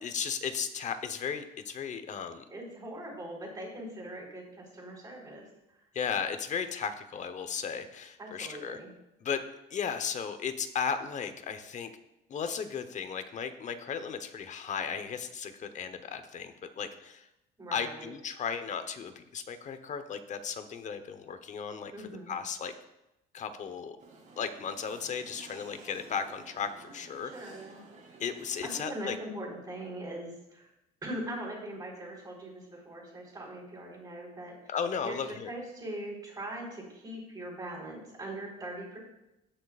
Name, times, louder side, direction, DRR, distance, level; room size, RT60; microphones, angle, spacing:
voice 1, 0.0-2.4 5.9-8.8 9.2-9.4 9.7-11.9 12.3-17.3 17.7-21.9 22.3-22.7 23.3-24.0 24.4-27.3 28.2-29.2 34.7-35.5, left 6 dB, 45° left, 9 dB, 1.0 m, -35 dB
voice 2, 2.5-5.8 8.2-8.9 17.6-18.1 21.9-22.4 27.2-27.8 28.7-30.7 31.0-34.8 35.0-35.2 35.5-39.0, right 1 dB, 20° right, -6 dB, 4.0 m, -41 dB
sound 1, 24.0-29.0, right 3 dB, 50° right, 3.0 m, -53 dB
17.5 x 6.6 x 2.5 m, 0.91 s
cardioid pair, 110°, 17 cm